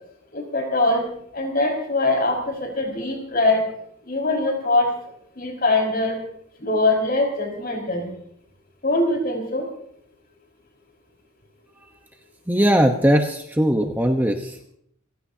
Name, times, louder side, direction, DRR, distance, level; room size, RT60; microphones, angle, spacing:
voice 1, 0.3-1.1 1.3-3.7 4.0-6.2 6.6-8.1 8.8-9.7, left 2 dB, 45° left, 2 dB, 5.3 m, -22 dB
voice 2, 12.5-14.6, equal, 10° right, 4 dB, 1.0 m, -19 dB
28.5 x 16.5 x 2.8 m, 0.70 s
head